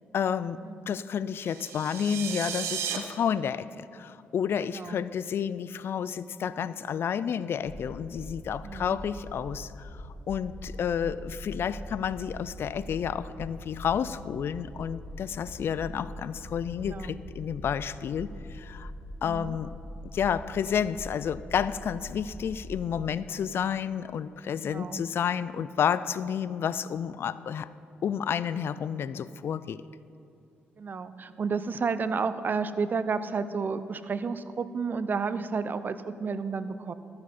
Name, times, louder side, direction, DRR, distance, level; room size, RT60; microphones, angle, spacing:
voice 1, 0.1-0.6 0.9-18.9 19.2-19.7 20.1-27.7 28.0-29.8, left 8 dB, 60° left, 16 dB, 0.4 m, -30 dB
sound 1, 1.4-3.0, right 9 dB, 85° right, 0.9 m, -34 dB
voice 2, 4.7-5.0 8.6-9.0 16.8-17.2 19.2-19.6 24.6-25.0 30.8-36.9, right 5 dB, 45° right, 13 dB, 0.6 m, -31 dB
sound 2, 7.6-23.0, equal, 20° left, 1.8 m, -43 dB
13.5 x 9.6 x 4.3 m, 2.6 s
cardioid pair, 65°, 4 cm